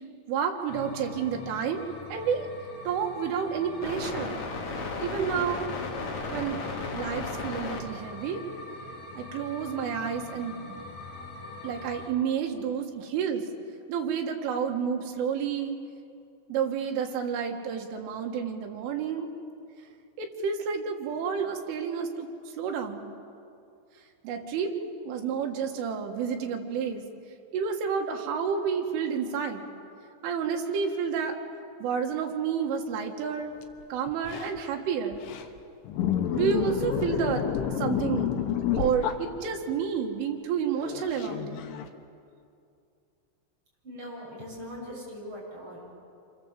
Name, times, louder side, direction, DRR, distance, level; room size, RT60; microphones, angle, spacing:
voice 1, 0.3-2.5 2.9-4.4 5.0-5.7 6.3-6.6 6.9-8.4 9.2-10.8 11.6-13.5 13.9-15.8 16.5-19.3 20.2-22.3 22.6-23.1 24.2-27.0 27.5-29.6 30.2-31.4 31.8-33.5 33.9-35.2 36.4-37.5 37.8-38.3 38.8-41.6, right 7 dB, 90° right, 3 dB, 4.3 m, -30 dB
sound 1, 0.7-12.1, left 3 dB, 45° left, 2.8 m, -38 dB
sound 2, 33.8-33.9 34.1-34.6 35.1-35.6 35.9-39.7 40.8-41.9, left 9 dB, 80° left, 3.6 m, -29 dB
voice 2, 43.8-45.9, equal, 25° right, -4 dB, 8.2 m, -41 dB
28.0 x 23.5 x 7.6 m, 2.5 s
omnidirectional pair, 5.5 m